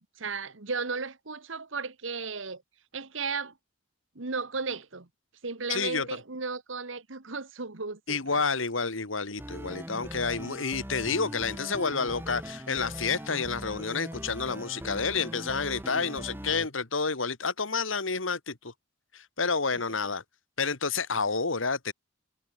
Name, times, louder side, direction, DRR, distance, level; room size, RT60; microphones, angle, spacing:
voice 1, 0.0-2.6 2.9-3.6 4.1-5.1 5.4-8.4 19.7-19.8, right 4 dB, 80° right, 1.7 m, -35 dB
voice 2, 5.7-6.1 8.1-18.7 19.1-20.2 20.6-21.9, left 4 dB, 85° left, 2.2 m, -29 dB
sound 1, 9.4-16.7, equal, 10° right, 2.0 m, -40 dB
head